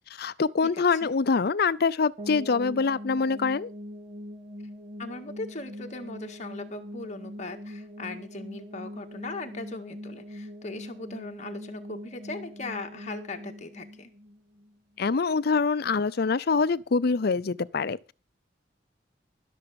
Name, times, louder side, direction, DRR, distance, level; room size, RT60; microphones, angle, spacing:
voice 1, 0.2-3.7 15.0-18.1, left 4 dB, 55° left, 0.5 m, -25 dB
voice 2, 0.7-1.1 5.0-14.1, left 2 dB, 40° left, 1.9 m, -39 dB
sound 1, 2.2-15.1, equal, 40° right, 4.4 m, -42 dB
14.0 x 7.0 x 7.0 m
head